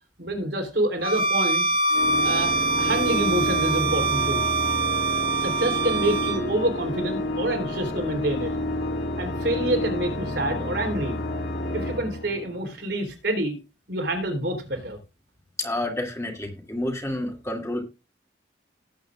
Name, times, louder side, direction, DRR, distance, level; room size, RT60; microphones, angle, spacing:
voice 1, 0.2-1.6 2.2-4.4 5.3-8.5 9.2-11.2 11.7-13.6 13.9-15.0, right 1 dB, 65° right, 4 dB, 3.5 m, -27 dB
Bowed string instrument, 1.0-6.4, right 3 dB, 25° right, 1.5 m, -24 dB
Organ, 1.9-12.8, left 1 dB, 75° left, 2.1 m, -30 dB
voice 2, 15.6-17.8, left 1 dB, 15° left, 1 dB, 2.5 m, -29 dB
18.5 x 8.5 x 2.5 m, 0.29 s
head